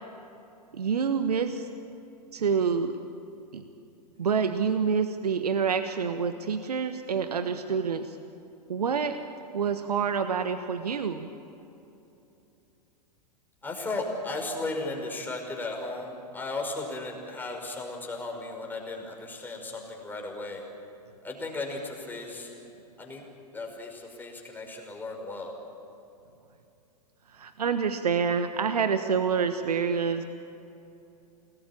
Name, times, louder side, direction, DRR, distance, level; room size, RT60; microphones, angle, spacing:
voice 1, 0.7-1.7 2.3-3.0 3.5-3.6 4.2-8.2 8.7-9.2 9.5-11.3 27.3-30.2, right 6 dB, 70° right, 9 dB, 1.3 m, -27 dB
voice 2, 13.6-20.7 21.2-22.5 23.0-23.2 23.5-25.5, left 2 dB, 10° left, 0 dB, 5.5 m, -35 dB
28.5 x 19.5 x 8.8 m, 2.8 s
figure-of-eight pair, 100°, 21 cm